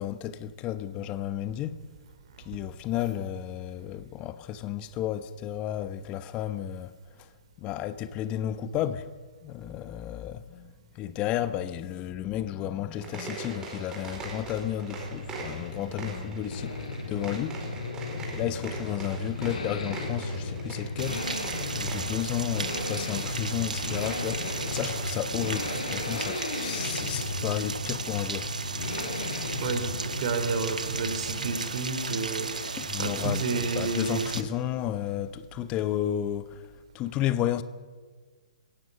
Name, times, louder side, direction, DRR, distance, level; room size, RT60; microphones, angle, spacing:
voice 1, 0.0-1.8 2.4-7.3 7.6-9.1 9.4-16.8 17.1-17.6 17.9-21.3 21.7-28.5 32.1-32.2 32.8-37.6, left 11 dB, 25° left, 1.1 m, -32 dB
sound 1, 12.9-26.1, right 3 dB, 15° right, 4.6 m, -42 dB
sound 2, 14.2-31.9, left 3 dB, 65° left, 4.3 m, -36 dB
Rain, 21.0-34.4, right 4 dB, 75° right, 1.7 m, -35 dB
voice 2, 29.6-34.3, right 4 dB, 45° right, 3.2 m, -31 dB
24.5 x 17.0 x 7.0 m
figure-of-eight pair, 125°, 4 cm